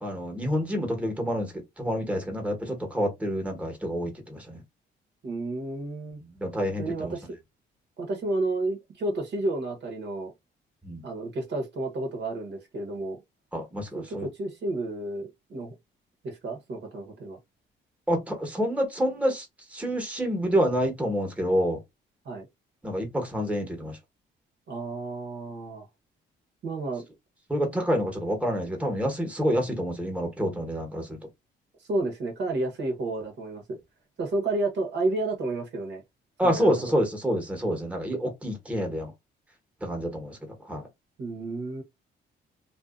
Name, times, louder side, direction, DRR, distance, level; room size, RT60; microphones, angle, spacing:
voice 1, 0.0-4.6 6.4-7.1 10.8-11.0 13.5-14.3 18.1-19.4 19.7-21.8 22.8-24.0 27.5-31.2 36.4-39.1 39.8-40.4 40.7-40.8, equal, 5° right, 1.0 m, -28 dB
voice 2, 5.2-6.2 6.8-7.3 8.0-10.3 11.0-13.2 13.9-15.7 16.2-17.4 22.2-22.5 24.7-25.8 26.6-27.0 31.9-33.8 34.2-36.0 36.4-36.9 41.2-41.8, right 2 dB, 60° right, 1.1 m, -31 dB
2.6 x 2.4 x 2.4 m
cardioid pair, 90°, 20 cm